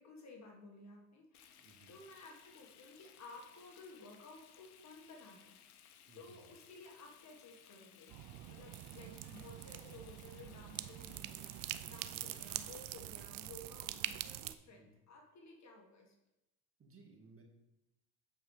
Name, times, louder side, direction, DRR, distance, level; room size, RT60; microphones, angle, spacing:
voice 1, 0.0-5.5 6.1-8.1 8.5-16.1, left 2 dB, 40° left, 1 dB, 1.6 m, -55 dB
Frying (food), 1.3-12.9, left 9 dB, 85° left, 0.8 m, -62 dB
voice 2, 1.5-2.0 6.1-6.5 12.2-12.5 14.7-14.9 16.8-17.4, right 3 dB, 30° right, 0 dB, 1.7 m, -62 dB
sound 1, 8.1-14.5, right 14 dB, 50° right, 0.5 m, -45 dB
8.4 x 4.7 x 4.8 m, 0.91 s
hypercardioid pair, 75°, 43 cm